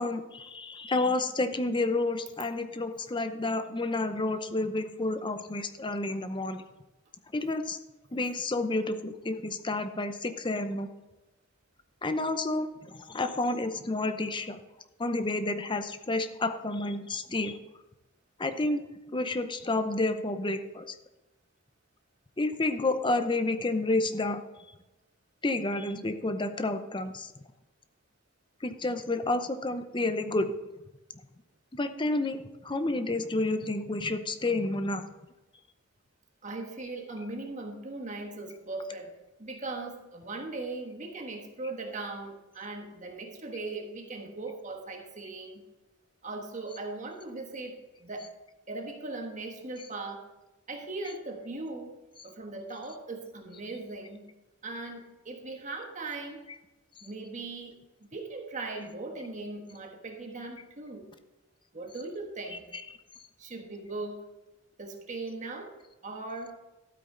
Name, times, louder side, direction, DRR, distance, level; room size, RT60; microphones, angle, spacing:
voice 1, 0.0-6.6 7.3-7.8 8.1-10.9 12.0-14.6 15.0-17.6 18.4-18.8 19.1-20.9 22.4-24.4 25.4-27.3 28.6-30.5 31.8-35.1 62.7-62.8, left 2 dB, 25° left, 9 dB, 0.7 m, -30 dB
voice 2, 36.4-39.1 39.4-45.6 46.2-48.3 48.7-50.2 50.7-51.9 52.2-54.3 54.6-56.4 57.0-61.1 61.7-62.7 63.4-64.2 64.8-65.7 66.0-66.5, right 2 dB, 35° right, 3 dB, 1.3 m, -39 dB
13.0 x 8.2 x 3.8 m, 1.0 s
head